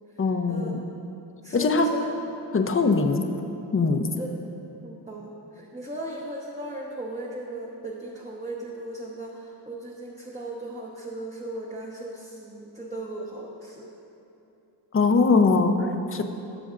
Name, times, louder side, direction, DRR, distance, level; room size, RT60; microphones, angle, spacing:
voice 1, 0.2-0.8 1.5-1.9 2.5-3.2 3.7-4.0 14.9-16.2, left 4 dB, 30° left, 5 dB, 0.7 m, -21 dB
voice 2, 1.4-2.1 2.8-2.9 4.2-4.3 4.8-13.9, right 1 dB, 15° right, -4 dB, 1.0 m, -37 dB
17.0 x 6.9 x 2.6 m, 2.8 s
cardioid pair, 85°, 44 cm